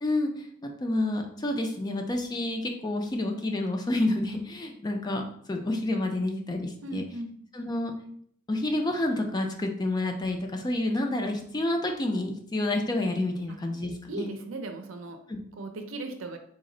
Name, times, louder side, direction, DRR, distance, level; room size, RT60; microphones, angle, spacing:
voice 1, 0.0-5.2 5.5-7.0 7.5-7.9 8.5-14.3 15.3-15.4, left 1 dB, 20° left, 3 dB, 0.4 m, -29 dB
voice 2, 6.8-7.3 14.1-15.2 15.6-16.4, right 2 dB, 75° right, 5 dB, 0.5 m, -37 dB
4.1 x 2.0 x 3.7 m, 0.66 s
head